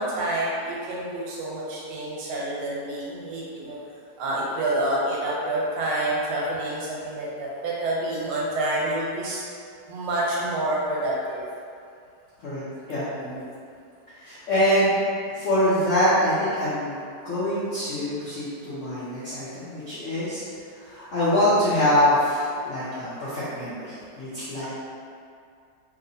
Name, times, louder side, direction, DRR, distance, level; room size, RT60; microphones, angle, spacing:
voice 1, 0.0-3.8 4.2-9.4 9.9-11.4 13.2-13.4 24.0-24.1, right 1 dB, 85° right, -5 dB, 1.6 m, -28 dB
voice 2, 12.4-13.0 14.2-15.0 15.3-16.9 17.2-20.4 20.7-24.7, left 1 dB, 85° left, -11 dB, 0.6 m, -24 dB
3.1 x 3.0 x 2.6 m, 2.4 s
omnidirectional pair, 2.2 m